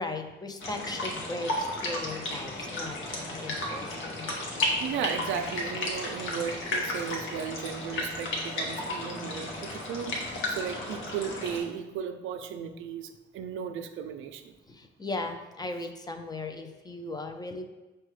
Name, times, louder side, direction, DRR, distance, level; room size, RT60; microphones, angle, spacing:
voice 1, 0.0-4.3 14.7-17.6, left 2 dB, 20° left, 5 dB, 0.4 m, -37 dB
sound 1, 0.6-11.6, left 1 dB, 80° left, 0.9 m, -33 dB
voice 2, 4.8-14.5, right 7 dB, 80° right, 7 dB, 0.4 m, -35 dB
5.5 x 2.2 x 3.1 m, 1.1 s
cardioid pair, 90°, 20 cm